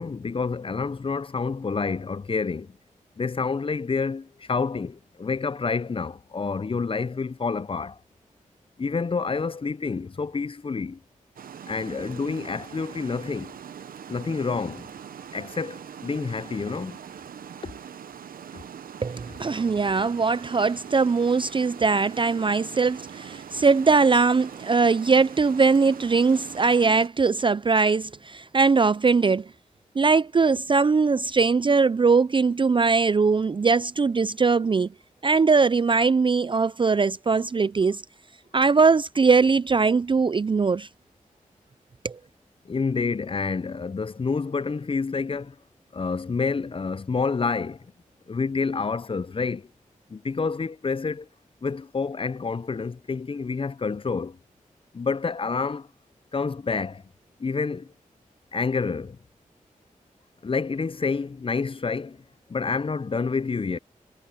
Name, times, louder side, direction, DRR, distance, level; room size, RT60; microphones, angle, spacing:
voice 1, 0.0-2.7 3.2-8.0 8.8-11.0 11.7-13.5 14.1-14.9 15.3-17.0 42.7-45.5 45.9-47.8 48.3-49.7 50.1-51.3 51.6-54.4 54.9-55.9 56.3-57.0 57.4-57.9 58.5-59.2 60.4-62.2 62.5-63.8, left 4 dB, 40° left, 0.5 m, -28 dB
Water, 11.4-27.1, right 8 dB, 85° right, 0.9 m, -42 dB
voice 2, 19.0-29.4 30.0-34.9 35.2-38.0 38.5-40.9 42.0-42.2, right 4 dB, 35° right, 0.4 m, -21 dB
cardioid pair, 40°, 14 cm